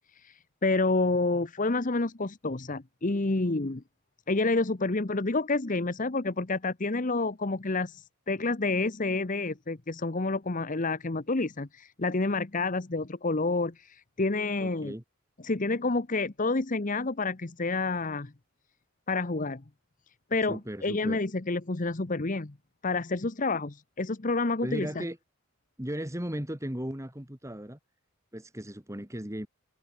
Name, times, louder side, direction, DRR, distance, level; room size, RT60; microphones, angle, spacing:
voice 1, 0.1-3.8 4.3-14.9 15.4-18.3 19.1-19.6 20.3-22.5 22.8-25.0, left 3 dB, 35° left, 1.0 m, -29 dB
voice 2, 14.6-15.0 20.4-21.2 24.6-25.2 25.8-27.8 28.3-29.5, equal, 15° right, 2.1 m, -36 dB
head